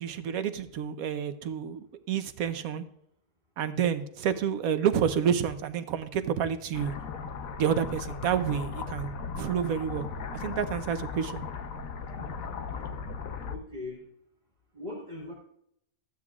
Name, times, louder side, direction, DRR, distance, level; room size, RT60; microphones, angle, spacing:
voice 1, 0.0-2.8 3.6-6.9 7.6-10.1 10.3-11.4, right 8 dB, 90° right, 10 dB, 1.2 m, -29 dB
sound 1, 6.7-13.6, left 5 dB, 80° left, 1.3 m, -37 dB
voice 2, 13.5-14.0 14.7-15.3, left 2 dB, 30° right, -3 dB, 2.2 m, -39 dB
14.0 x 9.1 x 2.4 m, 0.73 s
omnidirectional pair, 1.4 m